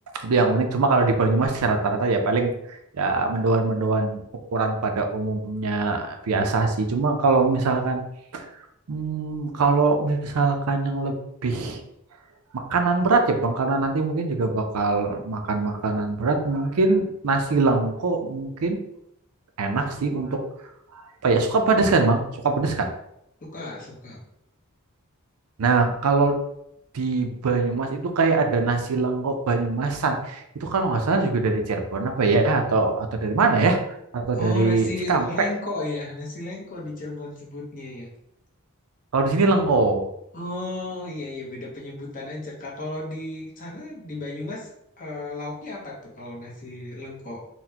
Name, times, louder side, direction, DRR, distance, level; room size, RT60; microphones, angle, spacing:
voice 1, 0.2-4.2 4.5-8.0 8.3-8.5 8.9-11.8 12.5-18.8 19.6-20.4 20.9-22.9 25.6-26.4 26.9-33.8 34.1-35.3 39.1-40.1, right 3 dB, 85° right, 5 dB, 0.5 m, -22 dB
voice 2, 23.4-24.2 34.4-38.1 40.3-47.4, left 2 dB, 40° left, -3 dB, 0.9 m, -34 dB
4.0 x 2.2 x 2.8 m, 0.78 s
head